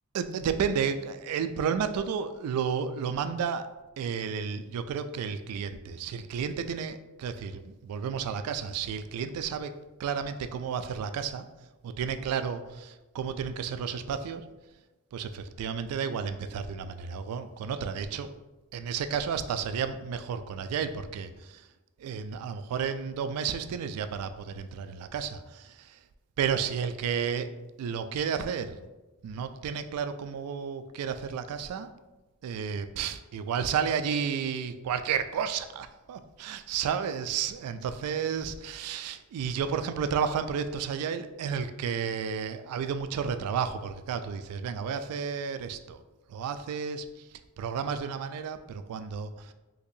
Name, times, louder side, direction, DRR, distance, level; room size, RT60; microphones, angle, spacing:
voice 1, 0.1-3.7 4.0-9.7 10.0-11.5 11.8-14.4 15.1-18.3 18.7-21.7 22.0-26.0 26.4-27.5 27.8-28.8 29.2-31.9 32.4-46.0 46.3-47.3 47.6-49.5, right 7 dB, 80° right, 13 dB, 0.3 m, -32 dB
3.9 x 2.9 x 2.7 m, 1.1 s
head